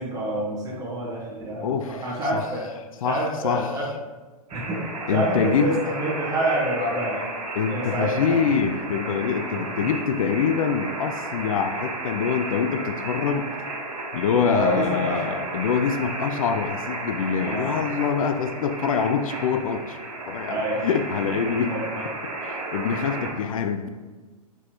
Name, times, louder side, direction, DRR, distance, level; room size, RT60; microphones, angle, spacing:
voice 1, 0.0-2.7 3.0-3.9 4.5-4.8 5.1-7.2 7.7-8.5 9.8-9.9 14.4-15.4 17.3-17.7 20.5-20.8 21.5-22.1, right 1 dB, 20° right, -4 dB, 1.3 m, -27 dB
voice 2, 1.6-2.0 2.3-2.4 3.0-3.7 5.1-5.7 7.6-13.5 14.1-20.0 20.3-21.7 22.4-23.9, left 6 dB, 60° left, 7 dB, 0.4 m, -25 dB
sound 1, 4.5-23.3, right 2 dB, 75° right, 1.4 m, -33 dB
4.6 x 4.0 x 2.9 m, 1.3 s
figure-of-eight pair, 110°, 20 cm